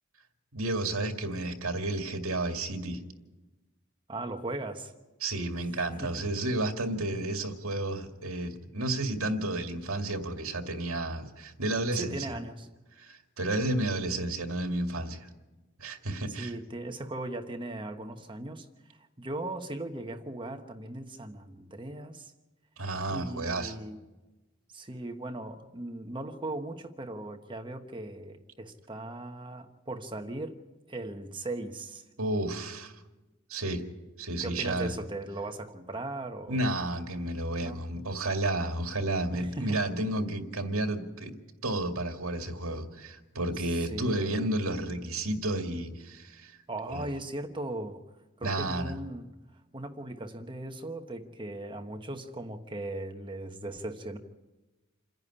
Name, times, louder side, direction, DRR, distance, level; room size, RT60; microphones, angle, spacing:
voice 1, 0.5-3.0 5.2-12.2 13.0-15.3 15.8-16.5 22.8-23.8 32.2-32.9 33.5-33.8 34.2-35.0 36.5-41.3 41.6-46.6 46.9-47.1 48.4-48.9, right 1 dB, 75° right, 5 dB, 2.1 m, -31 dB
voice 2, 4.1-4.9 6.0-6.1 11.9-12.7 16.3-22.3 23.1-24.0 24.7-30.6 30.9-32.0 34.4-36.6 37.6-37.8 39.3-39.8 43.6-44.5 46.7-48.0 48.4-49.3 49.7-54.2, right 2 dB, 25° right, 5 dB, 1.1 m, -38 dB
28.0 x 10.5 x 9.9 m, 1.1 s
head